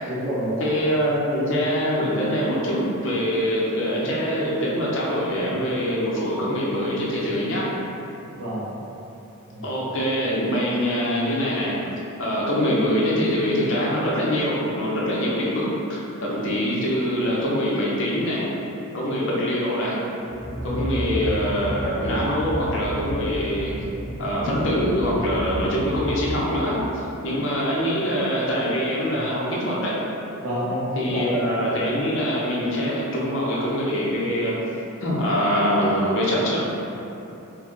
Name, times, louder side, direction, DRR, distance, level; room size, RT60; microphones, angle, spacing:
voice 1, 0.0-0.6 8.4-8.8 9.5-9.6 29.1-29.2 30.4-31.3, equal, 75° right, -8 dB, 0.9 m, -28 dB
voice 2, 0.6-7.7 9.6-11.7 12.2-18.5 18.9-20.0 20.6-23.7 24.2-30.0 31.0-34.6 35.0-36.7, equal, 60° left, -6 dB, 0.6 m, -24 dB
sound 1, 20.2-26.8, equal, 40° right, 0.6 m, -31 dB
2.6 x 2.3 x 3.7 m, 2.9 s
head